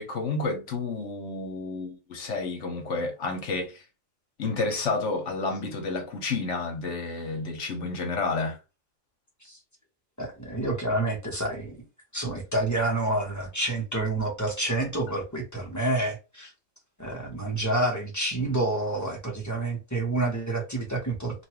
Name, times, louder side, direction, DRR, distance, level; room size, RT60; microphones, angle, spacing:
voice 1, 0.0-3.8 4.4-8.6, left 3 dB, 75° left, 1.2 m, -30 dB
voice 2, 10.2-11.8 12.1-16.5 17.0-21.4, right 2 dB, 15° left, 0.9 m, -28 dB
2.9 x 2.6 x 2.9 m
omnidirectional pair, 1.3 m